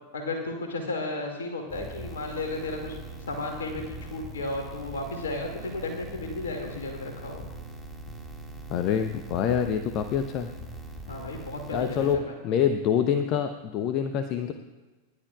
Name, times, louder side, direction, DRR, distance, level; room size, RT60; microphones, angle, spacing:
voice 1, 0.1-3.0 3.3-7.4 11.1-12.3, left 2 dB, 65° left, 2 dB, 2.2 m, -34 dB
sound 1, 1.7-12.1, right 2 dB, 10° left, 2.1 m, -42 dB
voice 2, 8.7-10.5 11.7-14.5, left 8 dB, 40° left, 9 dB, 0.8 m, -26 dB
29.5 x 11.0 x 2.4 m, 1.3 s
figure-of-eight pair, 90°, 0 cm